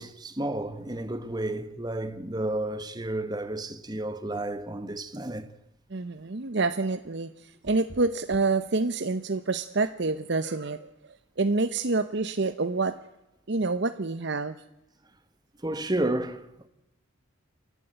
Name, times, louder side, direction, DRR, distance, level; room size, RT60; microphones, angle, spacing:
voice 1, 0.0-5.5 15.6-16.7, right 1 dB, 20° right, 1.1 m, -31 dB
voice 2, 5.9-10.9 11.4-12.9 13.5-14.5, right 3 dB, 55° right, 0.8 m, -27 dB
28.5 x 12.0 x 8.9 m
head